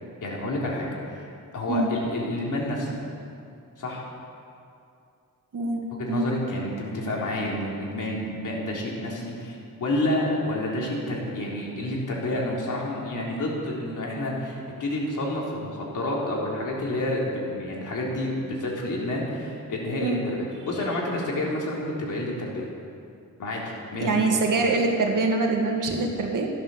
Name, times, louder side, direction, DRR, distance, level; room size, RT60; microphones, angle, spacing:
voice 1, 0.2-1.2 1.5-3.0 3.8-4.0 6.1-22.7 23.4-23.6 23.9-24.3, left 1 dB, 65° left, -3 dB, 3.6 m, -29 dB
voice 2, 24.0-26.5, right 3 dB, 70° right, 2 dB, 2.2 m, -24 dB
15.0 x 12.0 x 7.1 m, 2.5 s
wide cardioid pair, 170°, 33 cm